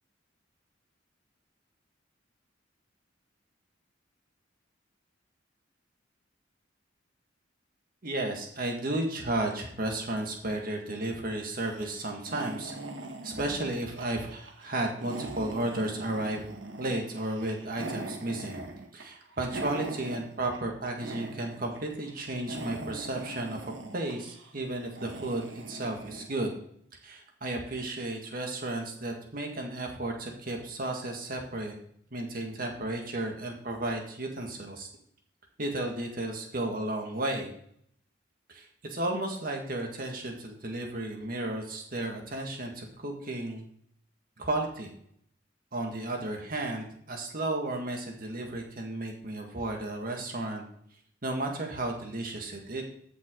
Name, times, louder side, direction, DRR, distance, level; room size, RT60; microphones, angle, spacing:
voice 1, 8.0-12.7 13.2-16.5 16.8-18.6 18.9-26.5 27.0-31.7 32.1-34.9 35.6-37.5 38.5-43.6 44.4-44.9 45.7-50.6 51.2-52.8, right 2 dB, 50° right, 2 dB, 1.8 m, -33 dB
sound 1, 11.6-20.7 21.0-21.8 22.1-26.3, right 2 dB, 70° right, 1.4 m, -42 dB
14.5 x 6.0 x 3.8 m, 0.67 s
head